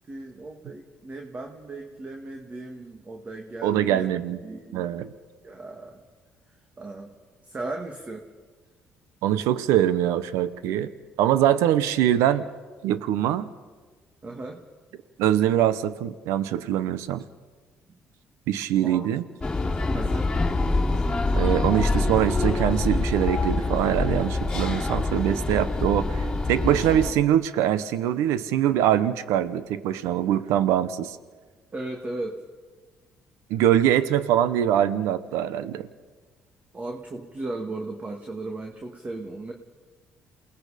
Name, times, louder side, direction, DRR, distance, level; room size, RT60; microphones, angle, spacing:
voice 1, 0.1-5.0 5.4-6.0 6.8-7.1 7.4-8.2 14.2-14.6 18.8-19.0 19.9-20.4 31.7-32.4 36.7-39.5, right 2 dB, 30° right, 2 dB, 2.2 m, -36 dB
voice 2, 3.6-4.4 4.7-5.1 9.2-10.9 11.2-12.5 12.8-13.5 15.2-17.2 18.5-19.2 21.3-26.2 26.5-31.2 33.5-35.9, right 11 dB, 85° right, 14 dB, 0.9 m, -23 dB
sound 1, 19.4-27.1, left 2 dB, 15° left, 3.2 m, -25 dB
28.5 x 19.0 x 5.1 m, 1.4 s
supercardioid pair, 80°, 5 cm